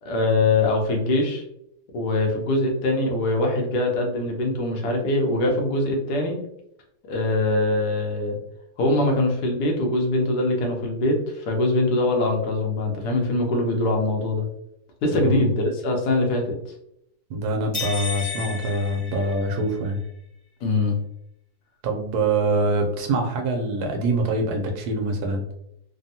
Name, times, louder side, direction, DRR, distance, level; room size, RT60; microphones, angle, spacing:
voice 1, 0.0-1.4 1.9-6.4 7.1-8.4 8.8-14.4 15.0-16.4 20.6-21.0, left 2 dB, 85° left, 1 dB, 1.3 m, -23 dB
voice 2, 17.3-20.0 21.8-25.4, right 2 dB, 75° right, 3 dB, 1.1 m, -24 dB
sound 1, 17.7-19.9, left 5 dB, 30° left, 0.7 m, -33 dB
3.4 x 2.0 x 2.7 m, 0.76 s
omnidirectional pair, 1.7 m